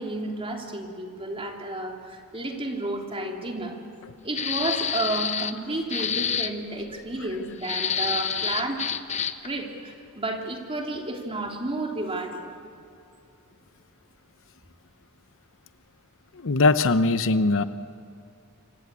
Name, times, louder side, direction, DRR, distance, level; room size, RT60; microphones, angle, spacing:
voice 1, 0.0-3.8 4.2-8.8 9.4-12.5, right 2 dB, 25° right, 2 dB, 3.2 m, -31 dB
sound 1, 4.3-5.6 5.9-6.5 7.6-9.5, left 8 dB, 30° left, 1.0 m, -28 dB
voice 2, 16.3-17.6, left 3 dB, 60° left, 12 dB, 0.9 m, -21 dB
27.0 x 25.0 x 8.4 m, 2.7 s
head